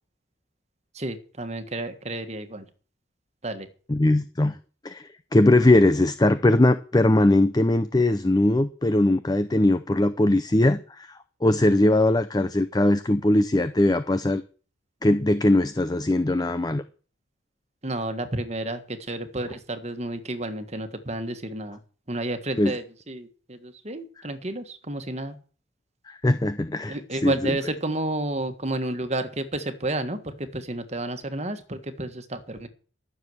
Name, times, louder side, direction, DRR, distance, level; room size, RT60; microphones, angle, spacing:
voice 1, 0.9-2.6 3.4-3.7 17.8-21.8 22.1-25.4 26.9-32.7, right 1 dB, 35° right, 1.6 m, -31 dB
voice 2, 3.9-4.6 4.8-14.4 15.0-16.8 22.6-22.7 26.1-27.0 27.2-27.3, left 1 dB, 20° left, 0.5 m, -20 dB
12.5 x 7.1 x 7.9 m
head